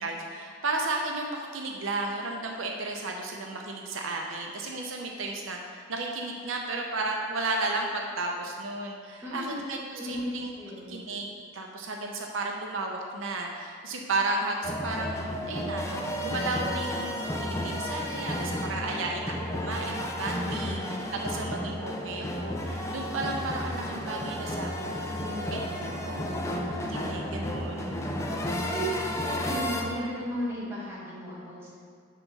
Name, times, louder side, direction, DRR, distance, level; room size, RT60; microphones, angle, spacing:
voice 1, 0.0-10.5 10.9-11.3 11.5-20.8 21.1-25.2 25.5-25.6 26.0-26.5 26.9-28.0, right 2 dB, 75° right, 1 dB, 0.6 m, -33 dB
voice 2, 9.2-9.6 9.9-10.2 10.6-10.9 20.4-20.9 25.1-25.7 26.1-26.4 27.8-28.9 29.1-31.7, equal, 10° right, -8 dB, 1.7 m, -36 dB
sound 1, 14.6-29.8, left 1 dB, 15° left, 0.5 m, -32 dB
5.9 x 4.0 x 6.0 m, 2.1 s
head